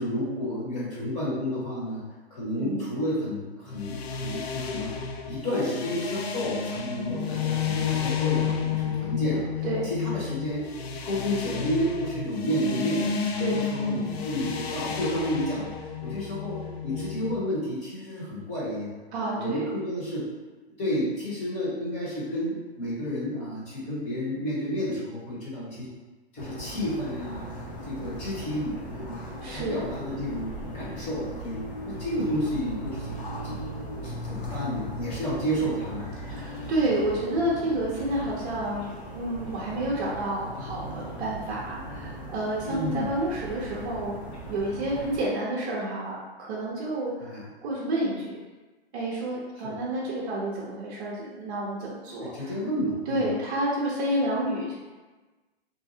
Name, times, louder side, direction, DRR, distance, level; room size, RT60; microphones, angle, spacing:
voice 1, 0.0-2.0 2.3-4.9 5.3-9.5 9.8-10.6 11.0-15.7 16.0-19.0 19.4-20.2 20.8-25.9 26.3-27.5 27.8-29.2 29.5-31.6 31.9-33.6 34.0-36.1 42.6-43.1 47.2-47.4 49.6-49.8 52.2-53.2, equal, 20° left, -9 dB, 1.2 m, -31 dB
sound 1, 3.7-17.3, left 6 dB, 75° left, 0.5 m, -31 dB
voice 2, 19.1-19.7 29.4-29.8 36.2-38.9 39.1-44.2 44.5-48.4 48.9-52.5 53.1-54.7, right 1 dB, 40° right, -6 dB, 0.6 m, -29 dB
sound 2, 26.4-45.2, equal, 90° left, 0.9 m, -38 dB
2.6 x 2.3 x 2.7 m, 1.2 s
hypercardioid pair, 135°, 32 cm